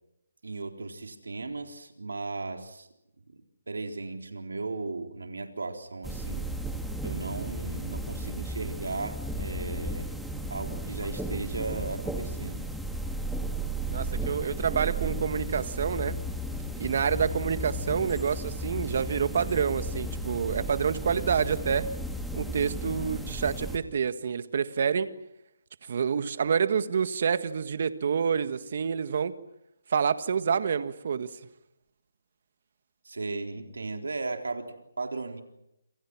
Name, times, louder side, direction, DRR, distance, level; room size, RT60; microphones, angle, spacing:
voice 1, 0.4-2.9 3.3-3.4 3.7-6.5 7.0-10.1 10.5-12.6 33.0-35.4, right 3 dB, 90° right, 4 dB, 3.8 m, -36 dB
sound 1, 6.0-23.8, right 1 dB, ahead, 1.9 m, -34 dB
voice 2, 13.9-16.2 16.8-21.9 22.3-25.1 25.9-29.3 29.9-31.3, right 6 dB, 50° right, 12 dB, 1.7 m, -28 dB
27.5 x 27.0 x 6.1 m, 0.83 s
hypercardioid pair, 160°, 0 cm